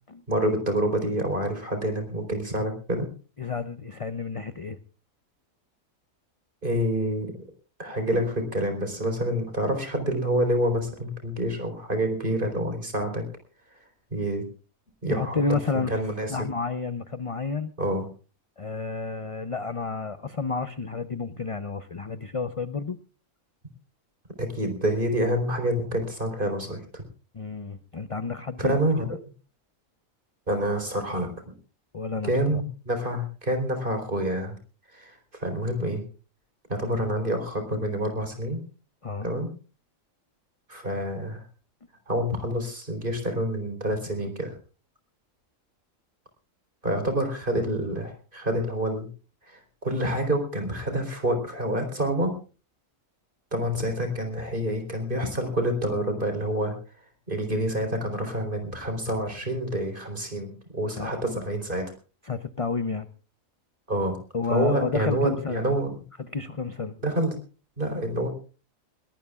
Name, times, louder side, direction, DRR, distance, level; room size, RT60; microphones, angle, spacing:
voice 1, 0.3-3.1 6.6-7.4 7.8-13.2 14.1-14.4 15.0-15.4 15.9-16.5 17.8-18.1 24.4-27.0 28.6-29.1 30.5-31.3 32.2-34.6 34.9-36.0 36.7-38.6 39.2-39.5 40.7-41.4 42.1-44.5 46.8-49.1 49.5-52.3 53.5-56.7 57.3-61.8 63.9-64.2 64.5-66.0 67.0-67.3 67.8-68.3, right 1 dB, 40° right, 6 dB, 4.4 m, -27 dB
voice 2, 3.4-4.8 15.1-16.0 16.3-17.7 18.6-23.0 27.3-28.9 31.9-32.6 39.0-39.3 61.0-61.4 62.2-63.1 64.3-65.7 66.2-66.9, left 4 dB, 35° left, 11 dB, 0.6 m, -30 dB
22.0 x 18.5 x 2.4 m, 0.37 s
omnidirectional pair, 1.4 m